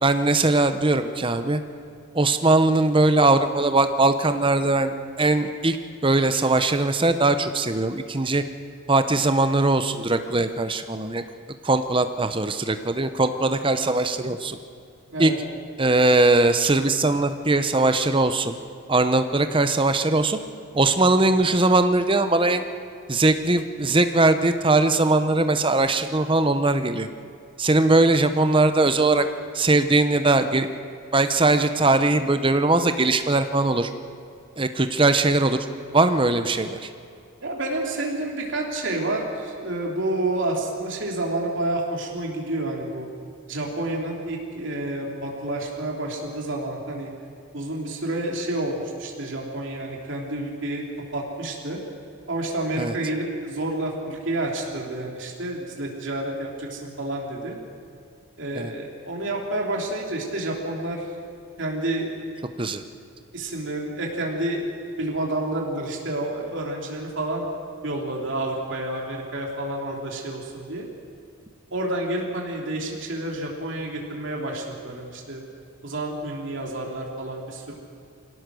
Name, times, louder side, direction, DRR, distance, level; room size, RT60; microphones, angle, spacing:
voice 1, 0.0-1.6 2.1-5.8 6.0-8.4 8.9-11.2 11.6-14.6 15.2-15.3 15.8-18.6 18.9-20.4 20.7-22.6 23.1-27.1 27.6-29.3 29.5-30.7 31.1-33.9 34.6-35.6 35.9-36.9 52.8-52.9 58.6-58.7 62.6-62.8, right 2 dB, 25° right, 9 dB, 0.9 m, -20 dB
voice 2, 37.4-43.1 43.5-47.1 47.5-50.8 51.1-51.8 52.3-57.6 58.4-61.1 61.6-62.1 63.3-64.7 65.0-67.4 67.8-70.9 71.7-75.4 75.8-77.8, right 1 dB, 60° right, -1 dB, 3.2 m, -29 dB
23.5 x 17.5 x 6.3 m, 2.4 s
head